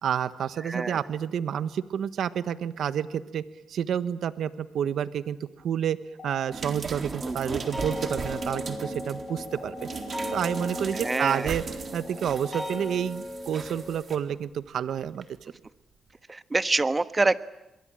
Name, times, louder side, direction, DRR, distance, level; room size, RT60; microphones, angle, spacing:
voice 1, 0.0-5.4 5.6-6.0 6.2-9.9 10.3-11.6 11.9-15.2, right 9 dB, 75° right, 13 dB, 1.2 m, -29 dB
voice 2, 0.6-1.0 7.2-7.6 11.0-11.5 16.3-17.4, right 3 dB, 25° right, 12 dB, 1.3 m, -26 dB
sound 1, 6.1-12.8, left 4 dB, 55° left, 6.5 m, -45 dB
sound 2, 6.5-14.2 15.2-15.3, right 5 dB, 50° right, 3.9 m, -38 dB
sound 3, 7.5-14.0, left 1 dB, 5° right, 5.9 m, -37 dB
27.5 x 22.5 x 8.9 m, 0.94 s
cardioid pair, 80°, 0 cm